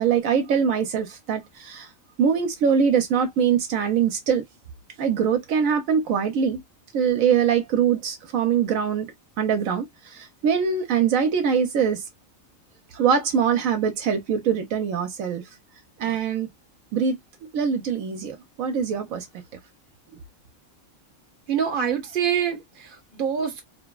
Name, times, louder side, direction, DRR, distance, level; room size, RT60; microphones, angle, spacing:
voice 1, 0.0-1.9 2.2-4.4 5.0-6.6 6.9-9.1 9.4-12.0 12.9-15.5 16.0-16.5 16.9-19.2 20.1-20.2, right 7 dB, 80° right, 1.1 m, -23 dB
voice 2, 21.5-23.6, right 8 dB, 45° right, 1.0 m, -25 dB
2.9 x 2.1 x 2.2 m
omnidirectional pair, 1.4 m